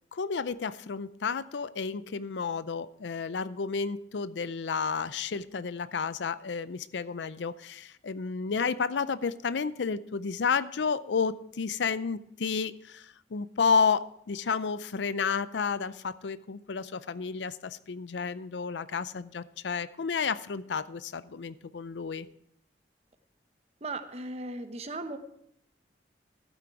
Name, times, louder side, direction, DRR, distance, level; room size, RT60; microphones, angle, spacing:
voice 1, 0.1-22.3, left 5 dB, 90° left, 16 dB, 0.5 m, -31 dB
voice 2, 23.8-25.2, right 2 dB, 35° right, 9 dB, 0.9 m, -37 dB
12.0 x 8.8 x 4.6 m, 0.73 s
head